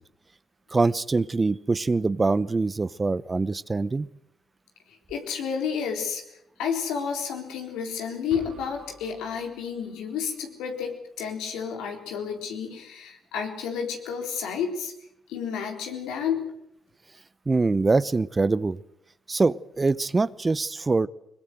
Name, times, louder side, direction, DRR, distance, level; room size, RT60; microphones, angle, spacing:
voice 1, 0.7-4.1 17.5-18.8 19.3-21.1, right 3 dB, 30° right, 18 dB, 0.9 m, -24 dB
voice 2, 5.1-6.2 6.6-14.9 15.3-16.5, left 7 dB, 85° left, 3 dB, 4.0 m, -31 dB
sound 1, 8.3-10.3, right 4 dB, 75° right, 5.4 m, -49 dB
22.0 x 21.5 x 8.0 m, 0.79 s
supercardioid pair, 50°, 0 cm